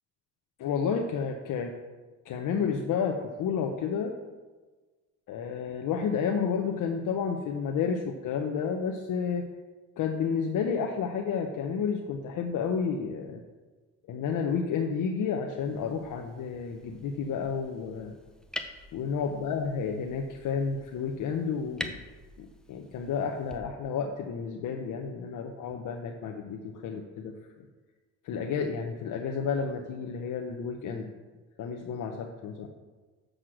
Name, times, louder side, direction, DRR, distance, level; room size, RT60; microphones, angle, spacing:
voice 1, 0.6-1.7 2.2-4.1 5.3-9.4 10.0-13.4 14.1-18.1 18.9-22.0 22.4-27.4 28.2-31.1 31.6-32.7, left 6 dB, 65° left, 3 dB, 0.9 m, -31 dB
sound 1, 15.6-23.6, left 1 dB, ahead, 0.7 m, -45 dB
7.4 x 6.5 x 6.3 m, 1.3 s
cardioid pair, 115°, 33 cm